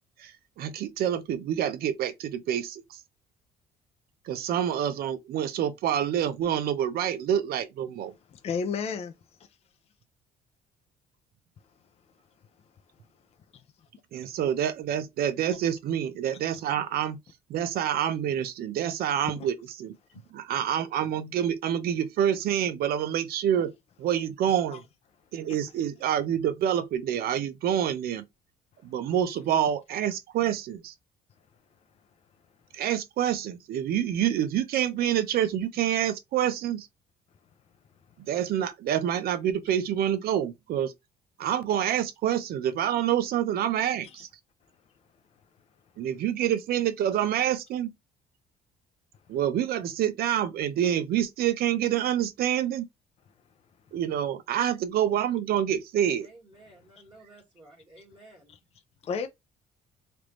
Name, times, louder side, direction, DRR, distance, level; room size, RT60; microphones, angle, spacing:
voice 1, 0.6-3.0 4.3-8.1 14.1-17.2 17.5-19.9 20.3-23.7 24.0-24.8 25.3-28.2 28.8-30.9 32.7-36.9 38.3-40.9 41.4-44.3 46.0-47.9 49.3-52.8 53.9-56.3, right 10 dB, 65° right, 0.6 m, -27 dB
voice 2, 8.3-9.1 19.4-19.5 24.7-24.8 25.5-25.6 44.0-44.2 58.5-58.6 59.0-59.3, left 5 dB, 35° left, 0.5 m, -32 dB
voice 3, 56.2-58.5, right 2 dB, 20° right, 1.7 m, -53 dB
3.3 x 2.6 x 3.0 m
cardioid pair, 110°, 17 cm